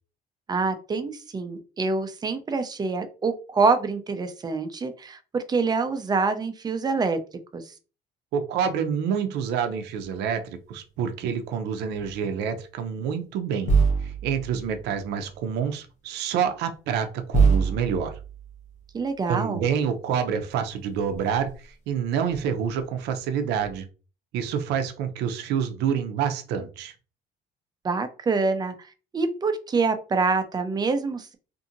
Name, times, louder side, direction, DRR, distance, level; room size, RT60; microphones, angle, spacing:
voice 1, 0.5-7.2 7.5-7.6 18.9-19.7 27.8-28.7 29.1-31.4, right 4 dB, 25° right, 0.5 m, -26 dB
voice 2, 8.3-10.4 10.7-13.7 14.0-18.1 19.3-21.5 21.9-23.9 24.3-26.9, right 7 dB, 80° right, 0.5 m, -27 dB
sound 1, 10.0-10.1 11.9-12.1 13.7-15.3 16.4-16.5 17.3-19.0 20.6-20.7 21.0-21.6 22.3-22.8 23.6-23.8, right 5 dB, 45° left, 0.8 m, -25 dB
2.7 x 2.6 x 2.5 m
cardioid pair, 110°, 17 cm